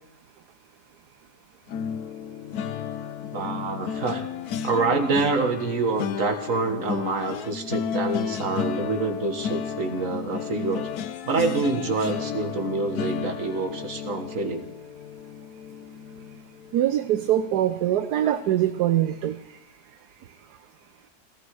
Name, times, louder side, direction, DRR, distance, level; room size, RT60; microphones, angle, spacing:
sound 1, 1.7-16.8 17.2-17.5 17.8-18.0, left 8 dB, 65° left, 1.2 m, -33 dB
voice 1, 3.3-4.3 4.6-10.9 11.2-14.7, right 3 dB, 50° right, 6 dB, 2.0 m, -26 dB
voice 2, 16.7-19.4, right 12 dB, 70° right, 10 dB, 1.2 m, -23 dB
18.5 x 15.5 x 4.8 m, 0.92 s
omnidirectional pair, 1.9 m